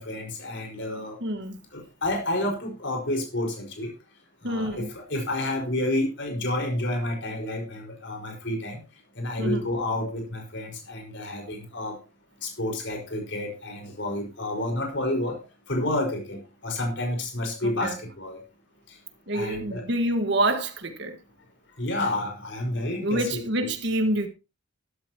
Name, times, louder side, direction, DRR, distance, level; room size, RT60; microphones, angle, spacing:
voice 1, 0.0-1.2 1.7-3.9 4.4-8.8 9.2-12.0 12.4-15.4 15.7-18.4 18.9-19.0 19.3-19.9 21.8-23.3 23.6-23.7, left 1 dB, 60° left, 5.3 m, -30 dB
voice 2, 1.2-1.6 4.4-4.9 9.4-9.6 17.6-18.0 19.3-21.2 23.0-24.3, right 1 dB, 60° right, 1.7 m, -27 dB
13.0 x 12.5 x 3.0 m
head